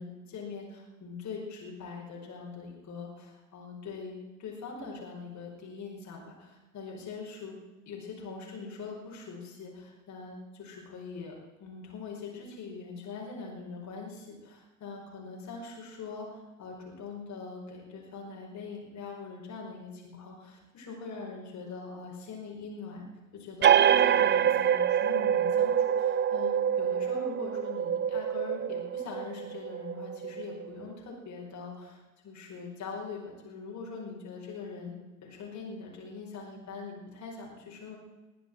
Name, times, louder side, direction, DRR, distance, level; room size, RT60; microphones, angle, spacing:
voice 1, 0.0-4.1 4.4-7.5 7.8-11.3 11.6-23.0 23.3-38.0, left 4 dB, 45° left, -2 dB, 5.2 m, -42 dB
sound 1, 23.6-30.8, right 9 dB, 25° right, 0.5 m, -26 dB
20.5 x 7.7 x 7.7 m, 1.2 s
figure-of-eight pair, 60°, 40 cm